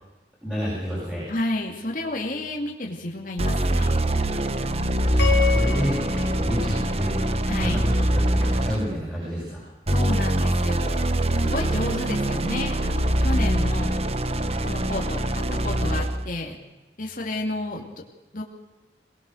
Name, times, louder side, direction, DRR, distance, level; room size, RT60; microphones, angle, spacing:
voice 1, 0.4-1.2 5.1-7.2 7.6-9.6, equal, 5° right, -8 dB, 7.4 m, -29 dB
voice 2, 1.3-4.0 7.5-7.8 9.9-11.1 11.4-13.9 14.6-16.5 17.0-17.8 18.3-18.4, left 1 dB, 50° left, 0 dB, 2.5 m, -31 dB
sound 1, 3.4-9.0 9.9-16.3, right 1 dB, 35° right, 1.0 m, -23 dB
sound 2, 5.2-7.6, left 8 dB, 75° left, 2.6 m, -29 dB
23.0 x 20.5 x 6.5 m, 1.1 s
head